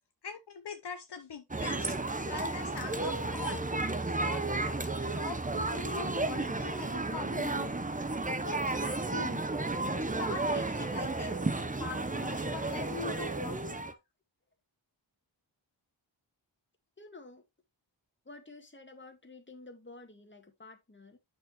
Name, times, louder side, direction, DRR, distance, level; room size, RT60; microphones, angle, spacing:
voice 1, 0.2-1.9 2.3-3.7 4.2-4.4 5.1-7.8 8.3-9.4 9.9-11.3 11.8-13.8, left 5 dB, 60° left, 0.9 m, -42 dB
sound 1, 1.5-13.9, right 2 dB, 20° right, 0.8 m, -33 dB
voice 2, 17.0-17.4 18.3-21.2, left 2 dB, 25° left, 1.9 m, -51 dB
8.5 x 6.4 x 3.0 m
wide cardioid pair, 90°, 45 cm